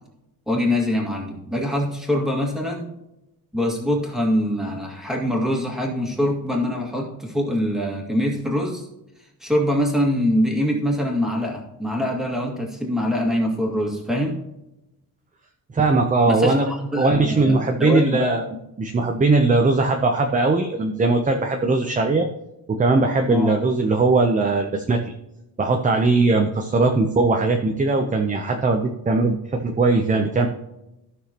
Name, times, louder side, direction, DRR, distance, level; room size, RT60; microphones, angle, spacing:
voice 1, 0.5-2.9 3.5-8.9 9.4-14.4 16.3-18.3 23.3-23.5, left 1 dB, ahead, -1 dB, 2.0 m, -24 dB
voice 2, 15.7-18.4 18.8-22.3 22.7-25.0 25.6-30.5, right 3 dB, 20° right, 4 dB, 0.6 m, -20 dB
14.5 x 6.2 x 2.9 m, 0.91 s
wide cardioid pair, 180°, 39 cm